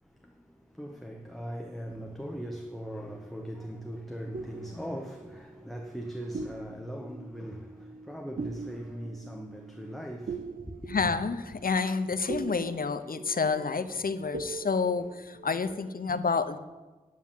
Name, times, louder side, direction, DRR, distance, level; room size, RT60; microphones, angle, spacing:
voice 1, 0.0-10.9, equal, ahead, 1.3 m, -40 dB
sound 1, 2.7-3.7 4.3-6.0 6.3-15.9, right 4 dB, 80° right, 0.6 m, -43 dB
voice 2, 10.9-16.6, left 4 dB, 85° left, 0.8 m, -29 dB
9.5 x 9.4 x 7.5 m
wide cardioid pair, 50°, 15 cm